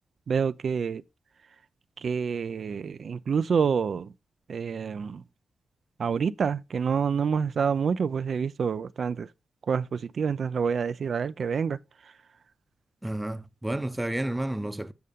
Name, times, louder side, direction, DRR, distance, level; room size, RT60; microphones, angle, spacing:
voice 1, 0.3-1.0 2.0-4.1 4.5-5.2 6.0-9.3 9.7-11.8 12.0-12.1, right 6 dB, 65° right, 0.4 m, -27 dB
voice 2, 13.0-14.9, right 1 dB, 15° right, 0.7 m, -31 dB
6.9 x 6.3 x 3.5 m
supercardioid pair, 45°, 0 cm